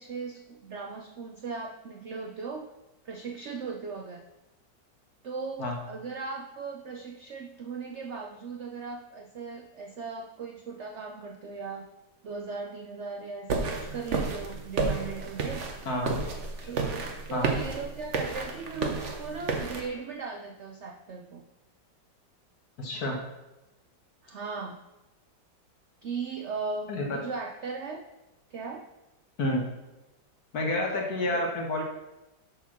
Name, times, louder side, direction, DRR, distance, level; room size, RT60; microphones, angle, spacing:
voice 1, 0.0-2.7 3.0-4.2 5.2-11.9 12.2-15.7 16.6-21.5 24.2-24.8 26.0-28.1 28.5-28.9 31.3-31.5, right 4 dB, 85° right, 3 dB, 0.6 m, -38 dB
sound 1, 13.5-19.9, right 4 dB, 50° right, 1.1 m, -32 dB
voice 2, 22.8-23.2 26.9-27.0 29.4-29.6 30.5-31.8, left 1 dB, 55° left, 1 dB, 1.7 m, -29 dB
7.3 x 4.6 x 5.9 m, 1.0 s
omnidirectional pair, 2.0 m